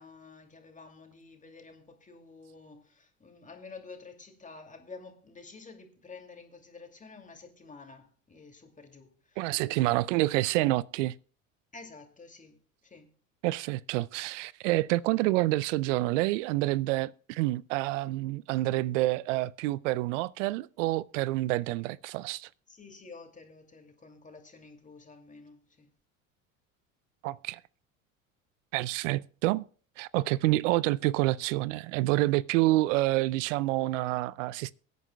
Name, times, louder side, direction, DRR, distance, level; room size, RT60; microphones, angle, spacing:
voice 1, 0.0-9.5 9.9-10.2 11.7-13.1 22.7-25.9, left 4 dB, 20° left, 2.5 m, -50 dB
voice 2, 9.4-11.2 13.4-22.5 27.2-27.6 28.7-29.6 30.0-34.7, right 18 dB, 70° right, 0.5 m, -28 dB
23.0 x 9.3 x 2.3 m
hypercardioid pair, 75°, 39 cm